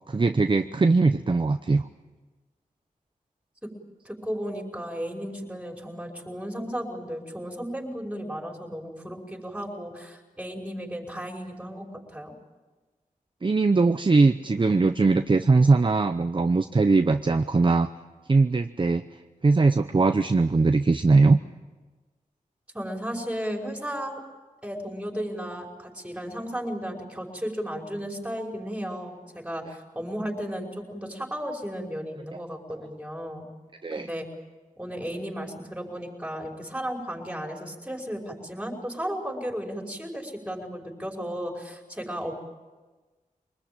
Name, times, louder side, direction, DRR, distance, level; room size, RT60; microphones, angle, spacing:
voice 1, 0.1-1.9 13.4-17.9 18.3-19.0 19.4-21.4 33.8-34.1, right 3 dB, 35° right, 9 dB, 0.7 m, -21 dB
voice 2, 4.1-12.3 22.7-24.2 24.6-33.4 34.0-34.3 34.8-42.3, equal, 10° right, 1 dB, 5.4 m, -34 dB
24.5 x 20.5 x 8.9 m, 1.3 s
wide cardioid pair, 70°, 14 cm